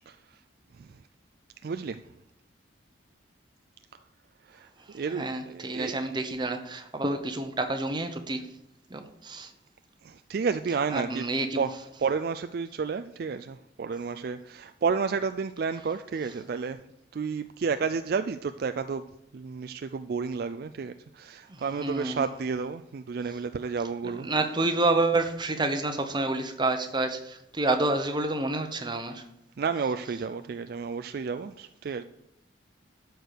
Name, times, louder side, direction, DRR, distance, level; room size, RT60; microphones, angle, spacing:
voice 1, 0.1-0.4 0.7-1.0 1.6-2.0 4.4-6.3 10.0-11.2 11.6-11.7 12.0-16.8 17.1-19.0 19.3-24.3 29.6-32.0, right 5 dB, 55° right, 9 dB, 0.3 m, -31 dB
voice 2, 5.1-8.4 8.9-9.5 10.9-11.6 21.8-22.2 24.0-29.2, right 2 dB, 25° right, 7 dB, 0.9 m, -28 dB
12.5 x 4.6 x 6.7 m, 0.82 s
head